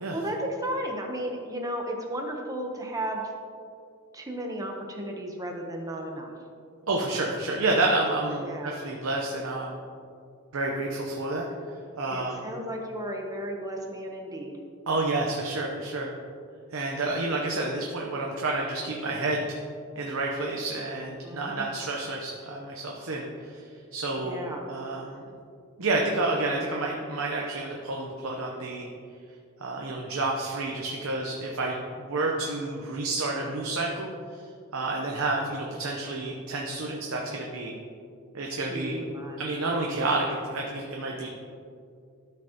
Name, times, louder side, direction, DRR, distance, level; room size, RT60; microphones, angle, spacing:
voice 1, 0.1-3.2 4.1-6.3 8.4-8.7 12.1-14.5 21.2-21.7 24.2-24.6 38.6-39.6, right 1 dB, 15° right, 1 dB, 0.9 m, -34 dB
voice 2, 6.9-9.8 10.5-11.5 12.0-12.5 14.9-16.1 16.7-19.6 20.0-25.2 25.8-28.9 29.6-34.4 34.7-37.7 38.3-39.0 39.4-41.3, right 2 dB, 65° right, -1 dB, 0.8 m, -29 dB
13.0 x 5.3 x 2.9 m, 2.3 s
head